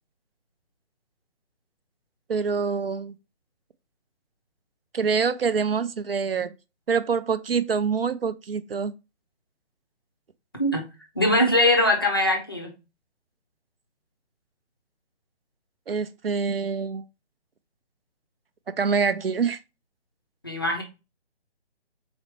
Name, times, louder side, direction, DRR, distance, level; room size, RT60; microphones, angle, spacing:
voice 1, 2.3-3.1 4.9-6.5 6.9-8.9 15.9-17.0 18.8-19.6, right 5 dB, 60° right, 0.5 m, -25 dB
voice 2, 11.1-12.7 20.4-20.8, left 1 dB, 20° left, 0.5 m, -21 dB
4.1 x 3.2 x 3.0 m
figure-of-eight pair, 145°, 34 cm